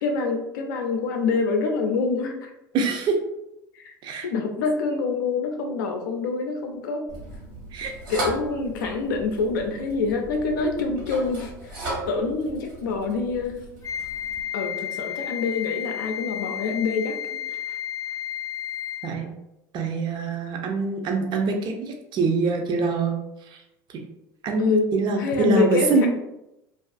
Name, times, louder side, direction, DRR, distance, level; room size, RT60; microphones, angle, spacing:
voice 1, 0.0-2.5 3.7-3.9 4.2-7.1 8.1-11.8 12.1-13.6 14.5-17.2 17.7-17.8 24.6-26.1, left 4 dB, 80° left, 4 dB, 0.5 m, -26 dB
voice 2, 2.7-3.2 4.0-4.3 7.7-7.9 19.0-19.3 19.7-23.2 23.5-23.6 24.4-26.1, right 4 dB, 45° right, 3 dB, 0.5 m, -24 dB
sound 1, 7.1-14.4, right 2 dB, 75° right, 1.1 m, -36 dB
Wind instrument woodwind instrument, 13.8-19.2, left 10 dB, 30° left, 0.6 m, -32 dB
2.4 x 2.4 x 2.4 m, 0.88 s
hypercardioid pair, 80°, 10 cm